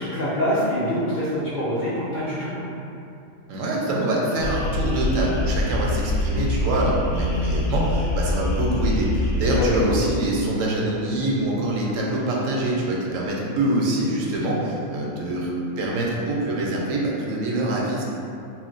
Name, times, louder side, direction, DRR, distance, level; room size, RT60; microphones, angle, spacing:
voice 1, 0.0-2.5 9.3-9.9, left 1 dB, 55° left, -11 dB, 0.5 m, -25 dB
voice 2, 3.5-18.0, right 1 dB, 80° right, -3 dB, 0.9 m, -25 dB
sound 1, 4.4-9.9, left 2 dB, 70° left, 0.9 m, -25 dB
2.4 x 2.1 x 3.8 m, 2.6 s
omnidirectional pair, 1.4 m